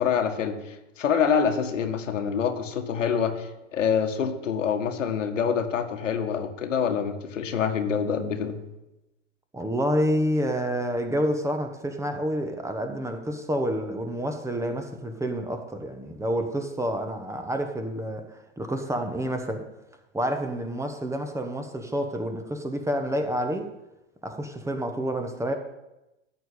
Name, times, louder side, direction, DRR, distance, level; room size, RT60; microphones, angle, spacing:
voice 1, 0.0-8.6, left 7 dB, 75° left, 1.8 m, -26 dB
voice 2, 9.5-19.6 20.1-23.7 24.2-25.5, equal, 10° right, 1.2 m, -28 dB
13.5 x 4.7 x 8.3 m
hypercardioid pair, 100°, 38 cm